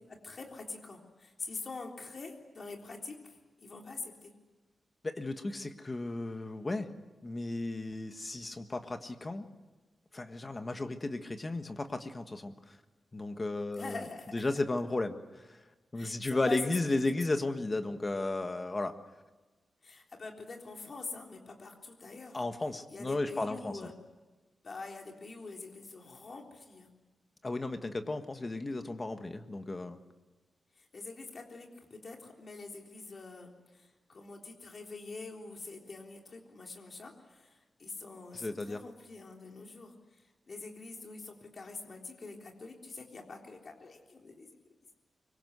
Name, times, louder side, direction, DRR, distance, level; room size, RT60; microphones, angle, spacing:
voice 1, 0.1-4.3 13.7-14.4 15.9-17.0 19.8-22.4 22.9-23.9 24.6-26.9 30.8-39.9 40.5-44.6, left 3 dB, 35° left, 1 dB, 3.6 m, -45 dB
voice 2, 5.0-6.9 7.2-9.4 10.1-12.5 13.1-14.0 14.3-15.6 15.9-18.9 22.3-23.8 27.4-30.0 38.3-38.8, left 2 dB, 20° left, 7 dB, 1.6 m, -34 dB
25.0 x 23.5 x 8.2 m, 1.2 s
wide cardioid pair, 170°, 0 cm